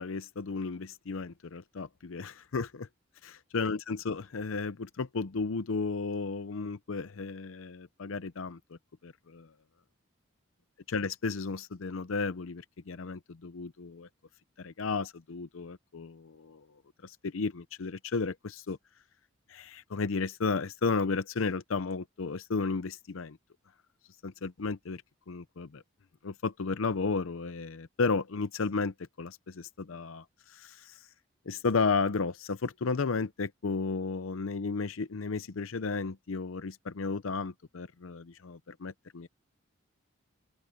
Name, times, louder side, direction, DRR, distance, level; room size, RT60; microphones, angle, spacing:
voice 1, 0.0-2.9 3.2-8.6 9.0-9.5 10.9-14.1 14.6-16.6 17.0-18.8 19.5-23.4 24.2-25.0 25.3-25.8 26.2-30.9 31.5-39.3, left 4 dB, 75° left, 0.6 m, -33 dB
open air
head